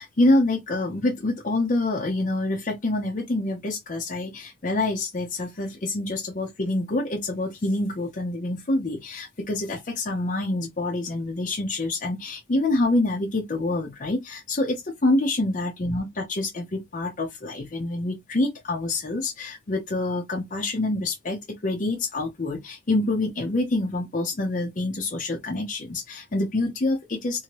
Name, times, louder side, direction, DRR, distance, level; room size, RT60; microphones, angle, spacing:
voice 1, 0.0-27.4, left 2 dB, 45° left, 0.6 m, -26 dB
2.9 x 2.7 x 2.9 m
head